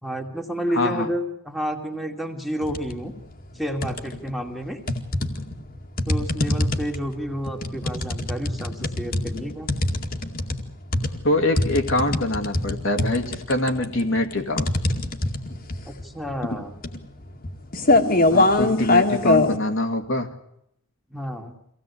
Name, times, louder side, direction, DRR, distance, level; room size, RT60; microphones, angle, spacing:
voice 1, 0.0-3.1 3.5-4.8 6.1-9.7 15.9-16.7 21.1-21.5, equal, ahead, 3 dB, 2.3 m, -30 dB
voice 2, 0.7-1.1 11.2-14.7 18.2-20.3, left 1 dB, 60° left, 4 dB, 2.2 m, -24 dB
sound 1, 2.6-3.0 3.4-4.3 4.9-19.6, left 2 dB, 40° left, 2.2 m, -23 dB
25.0 x 17.0 x 8.5 m, 0.79 s
head